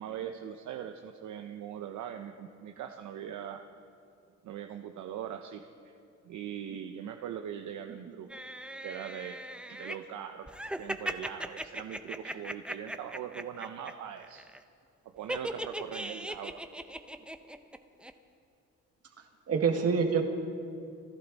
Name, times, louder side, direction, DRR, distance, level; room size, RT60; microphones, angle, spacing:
voice 1, 0.0-3.7 4.4-5.6 6.2-8.3 8.8-9.4 9.7-14.5 15.0-16.6, right 9 dB, 75° right, 5 dB, 0.8 m, -41 dB
sound 1, 8.3-9.9 10.5-13.9 14.2-14.6 15.3-17.8 18.0-18.1, right 1 dB, 5° right, 0.7 m, -38 dB
voice 2, 19.2-20.2, right 6 dB, 55° right, 4 dB, 1.8 m, -28 dB
27.0 x 11.5 x 4.1 m, 2.4 s
cardioid pair, 90°, 30 cm